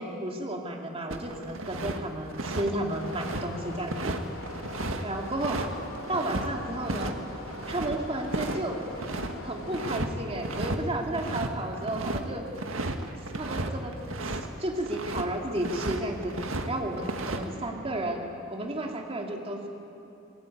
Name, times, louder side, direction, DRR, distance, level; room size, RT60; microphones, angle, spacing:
voice 1, 0.0-4.1 5.0-5.6 6.1-7.1 7.7-8.8 9.4-12.5 13.3-13.9 14.2-18.2 18.5-19.7, right 1 dB, 30° right, 1 dB, 2.6 m, -32 dB
sound 1, 1.1-2.0 2.3-6.5 6.9-7.1 7.4-9.3 9.7-10.1 10.3-10.8 11.1-14.5 14.8-15.3 15.6-16.7 16.9-17.4, right 2 dB, 85° right, 1.8 m, -33 dB
sound 2, 2.9-10.0, left 2 dB, 80° left, 3.2 m, -43 dB
25.0 x 21.0 x 9.6 m, 2.8 s
head